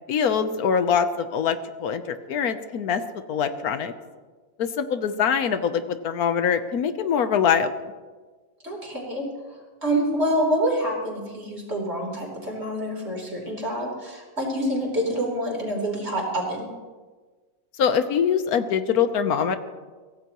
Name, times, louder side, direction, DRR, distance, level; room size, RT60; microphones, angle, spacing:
voice 1, 0.1-3.0 3.3-3.9 4.6-7.7 17.8-19.6, left 7 dB, 90° left, 10 dB, 1.4 m, -23 dB
voice 2, 8.6-16.7, equal, 45° right, -2 dB, 4.2 m, -27 dB
23.5 x 16.0 x 3.0 m, 1.4 s
omnidirectional pair, 1.5 m